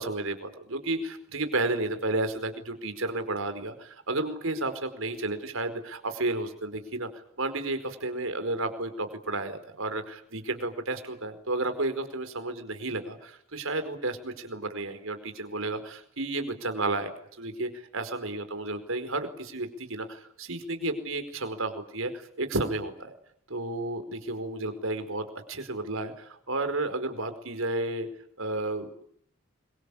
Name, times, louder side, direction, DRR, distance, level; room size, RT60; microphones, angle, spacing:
voice 1, 0.0-17.1 17.4-23.1 23.5-28.1 28.4-28.9, right 2 dB, 80° right, 9 dB, 4.7 m, -32 dB
26.0 x 23.5 x 8.6 m, 0.67 s
head